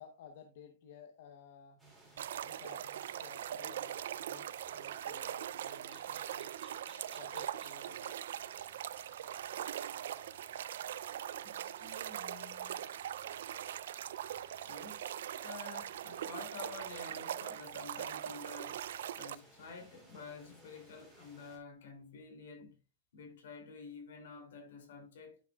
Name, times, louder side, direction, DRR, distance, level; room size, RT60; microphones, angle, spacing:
voice 1, 0.0-1.8 2.4-6.5 7.1-8.2, left 7 dB, 55° left, 0.9 m, -55 dB
sound 1, 1.8-21.6, right 1 dB, 5° left, 3.0 m, -61 dB
sound 2, 2.2-19.3, right 10 dB, 70° right, 0.4 m, -41 dB
voice 2, 11.4-12.9 14.6-15.1 15.4-18.8 19.1-22.8 23.1-25.4, left 4 dB, 75° left, 2.9 m, -50 dB
11.5 x 5.5 x 2.3 m
supercardioid pair, 170°, 0 cm